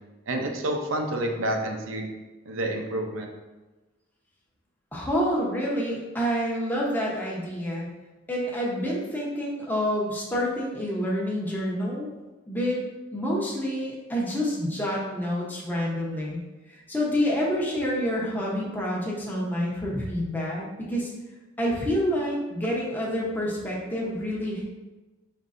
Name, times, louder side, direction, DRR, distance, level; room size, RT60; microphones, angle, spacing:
voice 1, 0.3-2.1 2.5-3.3, right 1 dB, 80° right, 3 dB, 0.6 m, -29 dB
voice 2, 4.9-7.9 8.3-12.1 12.5-12.8 13.1-16.4 16.7-21.1 21.6-24.6, equal, 10° left, -5 dB, 0.8 m, -28 dB
5.3 x 3.2 x 2.6 m, 1.1 s
head